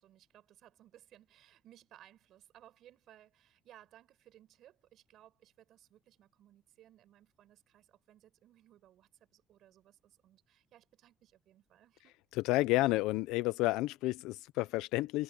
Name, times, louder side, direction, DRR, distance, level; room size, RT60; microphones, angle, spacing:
voice 1, 0.0-12.2, right 12 dB, 60° right, 5.9 m, -61 dB
voice 2, 12.4-15.2, left 19 dB, 90° left, 0.4 m, -30 dB
cardioid pair, 130°, 0 cm